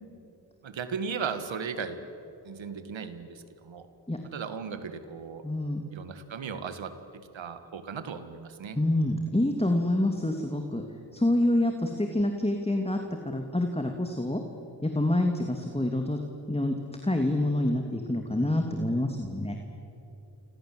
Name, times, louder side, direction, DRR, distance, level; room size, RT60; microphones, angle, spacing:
voice 1, 0.6-2.0 2.4-3.9 4.3-5.5 5.9-8.8, right 6 dB, 85° right, 10 dB, 1.9 m, -36 dB
voice 2, 5.4-5.9 8.8-10.8 11.1-13.0 13.2-14.4 14.8-16.2 16.5-16.8 17.0-19.6, left 1 dB, 15° left, 4 dB, 2.8 m, -27 dB
29.0 x 26.0 x 7.9 m, 3.0 s
cardioid pair, 50°, 44 cm